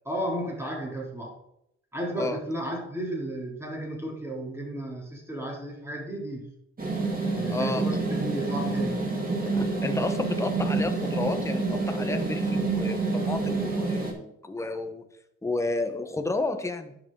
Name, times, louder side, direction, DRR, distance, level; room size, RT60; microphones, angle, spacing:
voice 1, 0.0-1.4 1.9-6.4 7.3-9.0, right 1 dB, 10° right, -1 dB, 3.1 m, -33 dB
sound 1, 6.8-14.1, right 3 dB, 30° right, 3.0 m, -28 dB
voice 2, 7.5-8.0 9.5-15.1 15.4-17.0, left 2 dB, 10° left, 7 dB, 1.0 m, -32 dB
10.5 x 7.0 x 3.8 m, 0.78 s
cardioid pair, 90°, 30 cm